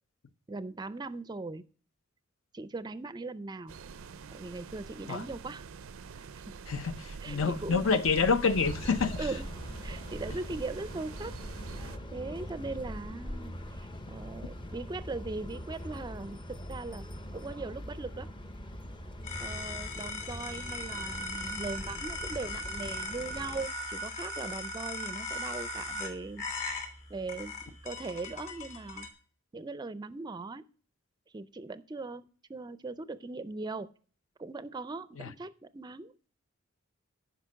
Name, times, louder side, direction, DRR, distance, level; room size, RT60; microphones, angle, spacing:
voice 1, 0.5-1.6 2.5-3.7 4.3-5.7 6.1-6.5 7.2-8.0 9.2-9.5 9.8-11.3 11.7-17.1 17.3-18.3 19.4-26.4 27.1-29.1 29.5-30.6 31.3-33.9 34.4-36.2, right 3 dB, 20° right, 0.4 m, -40 dB
sound 1, 3.7-12.0, right 4 dB, 85° right, 0.5 m, -44 dB
voice 2, 6.7-9.2 35.2-35.3, left 5 dB, 75° left, 0.7 m, -28 dB
sound 2, 8.5-23.7, equal, 25° left, 0.7 m, -42 dB
sound 3, 19.2-29.1, left 2 dB, 40° left, 2.9 m, -39 dB
11.0 x 5.2 x 6.1 m
head